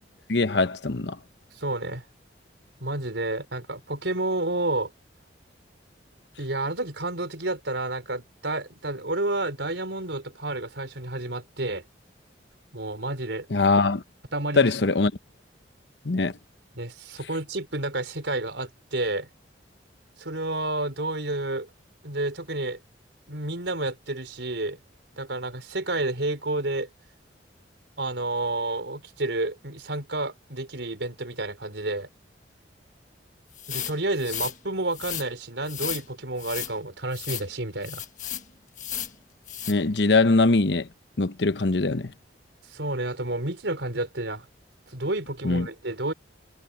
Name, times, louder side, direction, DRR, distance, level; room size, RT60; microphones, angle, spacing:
voice 1, 0.3-1.2 13.5-14.0 14.6-15.1 16.0-16.3 39.7-40.9 41.2-42.1 45.4-45.7, left 3 dB, 70° left, 0.9 m, -22 dB
voice 2, 1.5-2.0 2.8-4.9 6.4-11.8 12.7-13.5 14.3-14.7 16.7-19.3 20.2-21.7 22.0-22.8 23.3-24.8 25.2-26.9 28.0-32.1 33.7-38.0 42.7-44.5 44.9-46.1, right 2 dB, 80° right, 4.4 m, -30 dB
sound 1, 33.6-34.6 34.9-35.3 35.7-36.0 36.4-36.7 37.1-37.5 37.8-38.4 38.8-39.1 39.5-39.7, left 10 dB, 45° left, 1.5 m, -34 dB
head